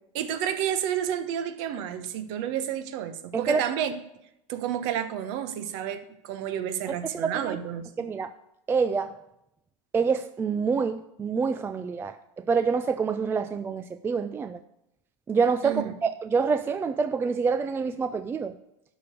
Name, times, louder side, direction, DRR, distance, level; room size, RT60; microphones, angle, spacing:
voice 1, 0.1-4.0 4.5-8.1 15.6-15.9, right 9 dB, 60° right, 1.2 m, -30 dB
voice 2, 7.1-7.6 8.0-8.3 8.7-9.1 9.9-14.6 15.3-18.5, right 5 dB, 15° right, 0.3 m, -26 dB
11.5 x 5.1 x 6.9 m
supercardioid pair, 140°, 16 cm